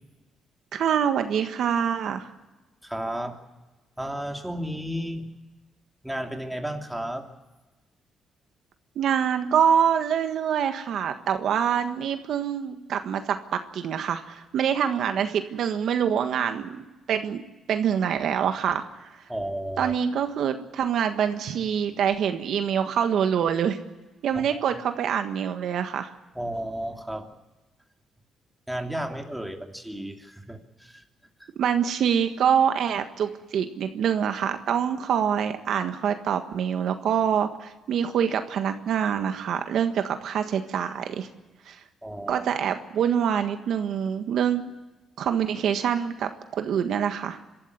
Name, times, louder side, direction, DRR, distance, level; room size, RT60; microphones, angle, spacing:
voice 1, 0.7-2.3 8.9-17.4 17.7-19.1 19.8-23.8 24.2-26.1 31.6-41.3 41.6-41.8 42.3-44.7 45.2-46.3 46.6-47.4, right 8 dB, 70° right, 7 dB, 1.5 m, -25 dB
voice 2, 2.8-3.4 4.0-5.3 6.0-7.3 19.3-19.9 24.3-24.6 26.3-27.3 28.7-31.0 31.4-31.5 42.0-42.4, right 1 dB, 5° right, 3 dB, 2.8 m, -33 dB
25.5 x 13.5 x 9.8 m, 1.1 s
cardioid pair, 90°, 0 cm